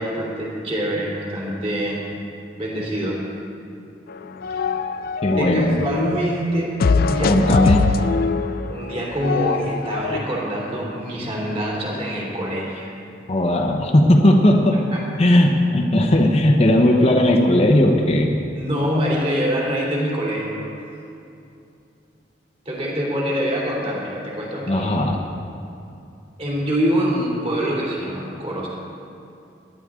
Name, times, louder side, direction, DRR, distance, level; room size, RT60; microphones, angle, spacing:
voice 1, 0.0-2.1 2.6-3.2 5.4-7.7 8.7-12.9 14.9-15.0 18.5-20.7 22.6-24.9 26.4-28.7, equal, 35° right, -3 dB, 3.1 m, -25 dB
sound 1, 4.1-6.2 6.8-10.2, left 4 dB, 60° left, 0.4 m, -22 dB
voice 2, 5.2-5.8 7.3-7.8 13.3-14.8 15.2-18.3 24.7-25.2, left 1 dB, 35° left, 0 dB, 1.0 m, -16 dB
20.0 x 11.5 x 3.7 m, 2.6 s
head